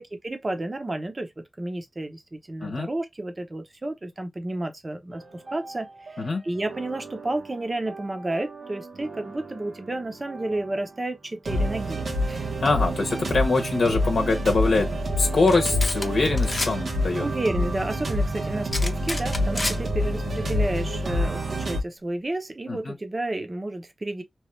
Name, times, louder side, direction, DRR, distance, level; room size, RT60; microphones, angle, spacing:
voice 1, 0.0-12.5 17.2-24.2, right 2 dB, 30° right, 0.7 m, -31 dB
sound 1, 5.1-6.3 6.6-10.9 11.5-21.8, equal, 85° right, 1.1 m, -28 dB
voice 2, 12.6-14.9 15.2-17.3 22.7-22.9, left 3 dB, 80° left, 0.8 m, -23 dB
sound 2, 15.5-15.6 15.8-16.1 16.4-16.7 18.7-19.8, left 2 dB, 30° left, 0.7 m, -29 dB
3.1 x 2.3 x 3.0 m
wide cardioid pair, 110°, 0 cm